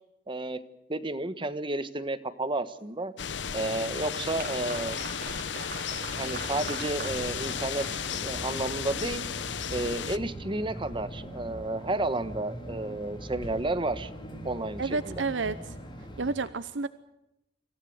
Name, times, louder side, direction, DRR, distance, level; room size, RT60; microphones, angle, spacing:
voice 1, 0.3-0.6 0.9-3.1 3.5-5.0 6.1-7.8 8.2-9.2 9.7-14.1 14.4-15.2, right 2 dB, 30° right, 12 dB, 1.2 m, -31 dB
sound 1, 3.2-10.2, left 7 dB, 70° left, 0.8 m, -34 dB
Applause, 3.4-8.7, right 4 dB, 55° right, 4.5 m, -43 dB
sound 2, 6.0-16.4, equal, 25° left, 4.0 m, -42 dB
voice 2, 14.8-15.7 16.2-16.9, right 4 dB, 85° right, 13 dB, 0.8 m, -30 dB
26.0 x 15.5 x 8.1 m, 0.89 s
head